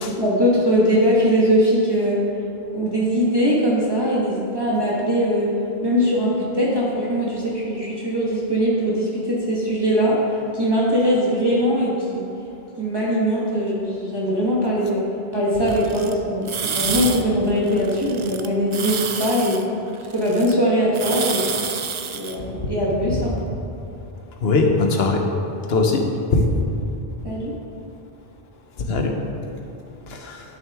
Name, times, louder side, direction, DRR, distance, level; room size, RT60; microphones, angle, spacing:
voice 1, 0.0-2.2 2.7-5.5 5.8-12.3 12.8-15.0 15.3-19.6 20.1-21.5 22.1-23.4 27.2-27.6, equal, 25° right, -6 dB, 1.2 m, -21 dB
sound 1, 15.7-16.1 16.5-17.2 17.5-18.5 18.7-20.5 20.9-22.4, right 6 dB, 50° right, 0.3 m, -28 dB
voice 2, 24.4-25.2 25.7-26.0 26.3-26.5 28.9-29.1 30.1-30.4, left 3 dB, 80° left, 3 dB, 1.1 m, -20 dB
11.0 x 6.4 x 3.5 m, 2.7 s
omnidirectional pair, 1.0 m